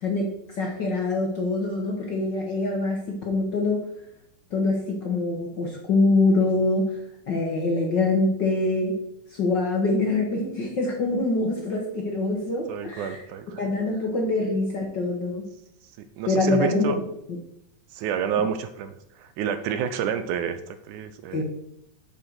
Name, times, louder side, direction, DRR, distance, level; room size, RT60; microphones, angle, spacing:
voice 1, 0.0-3.8 4.5-7.0 7.3-8.9 9.3-13.2 13.6-15.5 16.2-17.1 21.3-21.4, left 2 dB, 80° left, -1 dB, 1.0 m, -24 dB
voice 2, 12.7-13.6 16.2-17.0 17.9-21.4, right 8 dB, 80° right, 10 dB, 1.9 m, -29 dB
7.7 x 7.1 x 4.7 m, 0.77 s
omnidirectional pair, 3.9 m